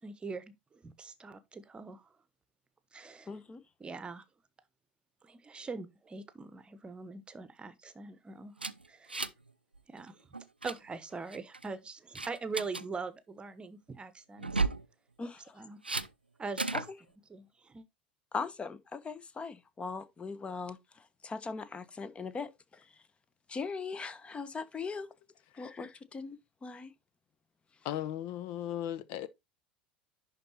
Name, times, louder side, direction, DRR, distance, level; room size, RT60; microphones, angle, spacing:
voice 1, 0.0-2.1 2.9-3.3 3.8-4.2 5.2-8.5 8.9-9.2 9.9-10.3 10.6-14.6 15.5-15.8 16.4-16.8 17.3-17.9, right 4 dB, 20° right, 1.1 m, -42 dB
voice 2, 3.3-3.6 15.2-15.6 16.7-16.8 18.3-22.9 23.5-25.1 25.5-26.9, left 4 dB, 20° left, 1.0 m, -40 dB
sound 1, 8.6-9.5 9.8-10.0 10.3-10.8 11.3-11.7 12.2-12.8 14.4-14.9 15.8-16.1 16.6-16.9, right 3 dB, 90° right, 0.5 m, -33 dB
voice 3, 27.8-29.3, left 12 dB, 50° left, 0.7 m, -36 dB
11.0 x 4.1 x 4.1 m
figure-of-eight pair, 75°, 5 cm